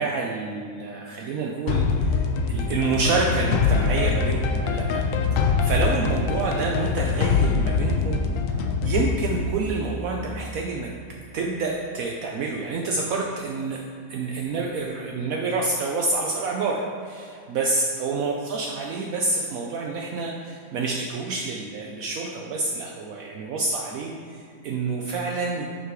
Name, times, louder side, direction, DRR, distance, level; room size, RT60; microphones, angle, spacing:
voice 1, 0.0-5.0 5.6-8.2 8.8-10.9 11.3-13.8 14.1-16.8 17.1-25.7, right 3 dB, 75° right, -1 dB, 0.8 m, -28 dB
sound 1, 1.7-10.5, left 5 dB, 90° left, 1.3 m, -24 dB
6.1 x 5.5 x 4.6 m, 2.4 s
omnidirectional pair, 2.0 m